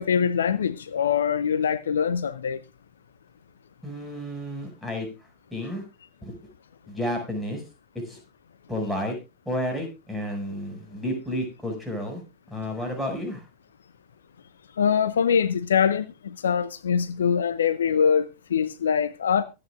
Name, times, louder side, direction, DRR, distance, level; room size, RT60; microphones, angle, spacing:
voice 1, 0.0-2.6 14.8-19.4, left 7 dB, 65° left, 0.7 m, -23 dB
voice 2, 3.8-5.1 5.5-5.8 6.2-6.3 6.9-7.6 8.1-8.2 8.7-9.1 9.4-12.2 12.5-13.4, equal, ahead, 6.3 m, -31 dB
24.0 x 8.9 x 2.5 m
figure-of-eight pair, 90°, 0 cm